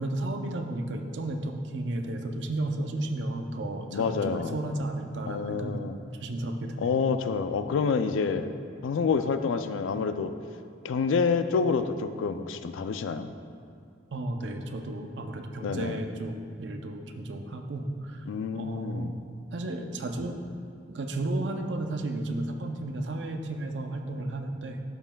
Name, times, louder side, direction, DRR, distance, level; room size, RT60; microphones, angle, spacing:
voice 1, 0.0-5.8 6.2-7.0 14.1-18.2 18.5-19.1 19.5-20.4 20.9-24.8, right 1 dB, 65° right, 5 dB, 0.5 m, -33 dB
voice 2, 3.9-4.6 5.3-6.0 6.8-8.5 8.8-10.3 10.8-13.3 15.6-16.0 18.3-19.2 24.1-24.2, left 5 dB, 85° left, 10 dB, 0.4 m, -28 dB
12.0 x 5.5 x 2.2 m, 2.4 s
head